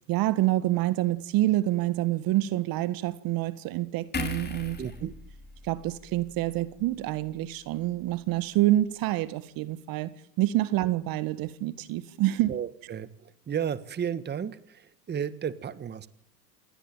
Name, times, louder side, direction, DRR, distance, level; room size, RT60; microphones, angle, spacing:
voice 1, 0.1-4.8 5.6-10.1 10.4-12.5, right 15 dB, 45° right, 16 dB, 1.7 m, -27 dB
sound 1, 4.1-7.5 7.8-8.0, left 4 dB, 20° left, 5.5 m, -39 dB
voice 2, 4.8-5.2 12.5-16.1, right 8 dB, 20° right, 15 dB, 1.7 m, -33 dB
27.5 x 19.0 x 9.0 m, 0.65 s
hypercardioid pair, 105°, 49 cm